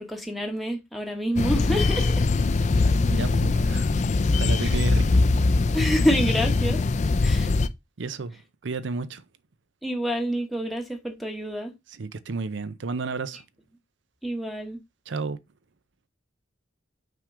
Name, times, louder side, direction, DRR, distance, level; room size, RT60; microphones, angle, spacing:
voice 1, 0.0-2.3 4.6-4.8 5.7-6.8 7.2-7.5 9.8-11.7 14.2-14.8, equal, ahead, 1.1 m, -27 dB
sound 1, 1.4-7.7, left 3 dB, 35° left, 0.4 m, -22 dB
voice 2, 3.1-3.9 4.3-5.2 8.0-9.2 12.0-13.4 15.1-15.4, right 4 dB, 60° right, 0.6 m, -32 dB
5.8 x 3.6 x 4.8 m
head